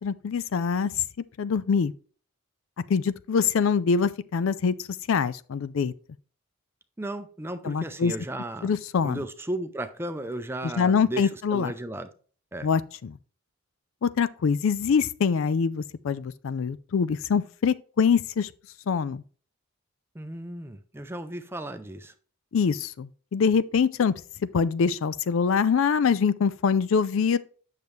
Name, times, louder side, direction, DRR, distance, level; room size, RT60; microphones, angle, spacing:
voice 1, 0.0-0.9 1.4-1.9 2.9-5.9 7.6-8.1 8.6-9.2 10.8-11.7 12.6-13.2 14.0-18.5 18.9-19.2 22.5-24.1 24.5-27.4, left 6 dB, 65° left, 0.4 m, -24 dB
voice 2, 7.0-8.7 9.0-12.1 12.5-12.7 20.1-22.1, right 1 dB, 10° right, 0.4 m, -35 dB
8.7 x 6.6 x 3.2 m
head